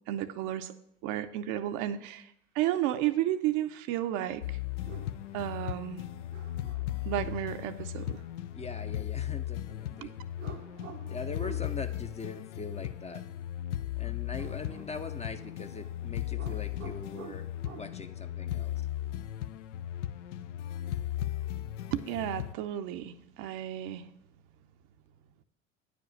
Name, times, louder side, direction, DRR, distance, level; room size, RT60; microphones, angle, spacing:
voice 1, 0.1-0.7 1.0-4.6 5.3-6.0 7.0-8.2 10.0-10.1 21.9-24.1, right 12 dB, 55° right, 9 dB, 0.7 m, -32 dB
sound 1, 2.6-3.2 4.7-5.3 6.3-7.4 10.4-11.7 14.3-15.9 16.2-17.9, right 7 dB, 85° right, 1.1 m, -49 dB
sound 2, 4.4-22.5, left 13 dB, 70° left, 0.5 m, -37 dB
voice 2, 8.5-10.1 11.1-13.2 14.0-17.5 17.8-18.8, left 4 dB, 20° left, 8 dB, 0.6 m, -41 dB
9.4 x 5.1 x 6.4 m, 0.76 s
hypercardioid pair, 70°, 37 cm